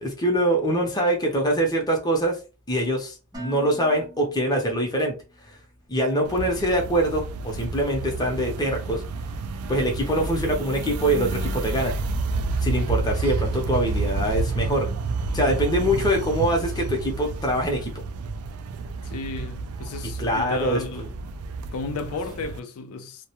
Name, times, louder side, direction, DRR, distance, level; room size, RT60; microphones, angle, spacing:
voice 1, 0.0-2.4 2.7-5.2 5.9-9.0 9.7-11.9 12.6-14.9 15.3-17.9 20.2-21.1, right 1 dB, 20° left, 0.6 m, -24 dB
Dishes pots and pans, 3.3-5.4, equal, 20° right, 0.6 m, -43 dB
sound 1, 6.3-22.6, right 3 dB, 80° right, 0.3 m, -30 dB
voice 2, 19.0-21.1 21.7-23.3, left 3 dB, 80° left, 0.4 m, -33 dB
2.2 x 2.1 x 2.8 m
head